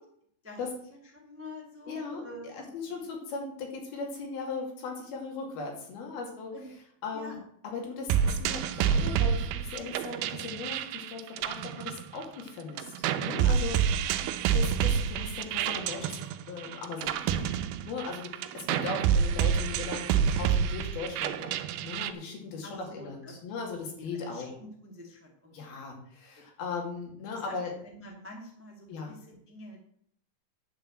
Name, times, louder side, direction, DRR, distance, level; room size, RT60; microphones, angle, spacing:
voice 1, 0.4-3.0 6.5-6.7 7.1-7.4 13.8-14.1 18.8-19.0 22.6-23.3 23.7-24.5 24.8-25.8 27.3-29.9, left 2 dB, 15° right, 1 dB, 0.4 m, -47 dB
voice 2, 1.9-2.2 2.5-6.5 7.0-7.3 7.6-12.9 13.2-14.1 14.5-16.2 16.5-17.4 17.9-21.6 21.8-24.5 25.5-27.7 28.9-29.1, left 4 dB, 75° left, 1 dB, 4.2 m, -38 dB
sound 1, 8.1-12.5 12.8-22.1, right 8 dB, 85° right, 2.6 m, -28 dB
9.9 x 5.8 x 7.6 m, 0.67 s
omnidirectional pair, 4.4 m